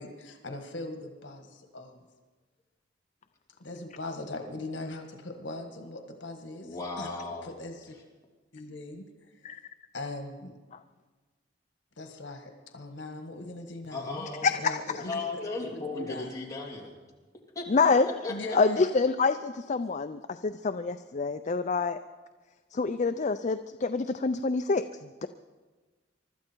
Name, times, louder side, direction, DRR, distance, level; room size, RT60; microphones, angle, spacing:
voice 1, 0.0-2.0 3.6-7.9 8.5-9.6 9.9-10.6 12.0-16.3 18.3-18.8, left 2 dB, 80° left, 5 dB, 1.7 m, -40 dB
voice 2, 6.6-7.6 13.9-14.5 15.0-16.9 17.5-17.6 18.2-18.3, left 3 dB, 20° left, -3 dB, 2.9 m, -35 dB
voice 3, 14.4-14.8 17.7-18.1 18.5-22.0 22.7-25.3, left 4 dB, 40° left, 9 dB, 0.4 m, -26 dB
24.0 x 12.5 x 4.5 m, 1.3 s
head